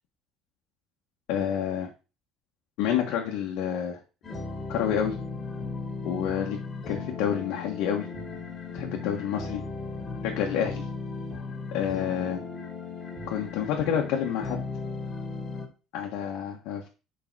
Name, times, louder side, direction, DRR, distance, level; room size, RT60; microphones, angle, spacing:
voice 1, 1.3-1.9 2.8-4.0 4.7-5.1 6.0-6.6 6.9-8.1 8.7-9.6 10.2-10.8 11.7-12.4 13.3-14.6 15.9-16.9, left 9 dB, 75° left, 0 dB, 1.4 m, -28 dB
sound 1, 4.2-15.7, left 4 dB, 20° left, 2.5 m, -36 dB
4.8 x 4.8 x 6.1 m, 0.31 s
cardioid pair, 140°, 0 cm